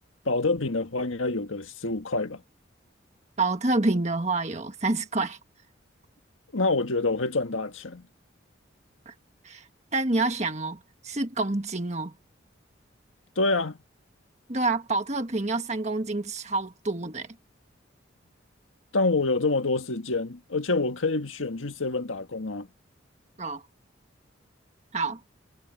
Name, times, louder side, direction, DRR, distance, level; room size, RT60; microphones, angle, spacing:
voice 1, 0.3-2.4 6.5-8.1 13.4-13.8 18.9-22.7, left 3 dB, 90° left, 1.7 m, -27 dB
voice 2, 3.4-5.4 9.0-9.1 9.4-9.6 9.9-10.8 11.0-12.1 14.5-17.3 23.4-23.6 24.9-25.2, right 2 dB, 35° right, 1.5 m, -27 dB
head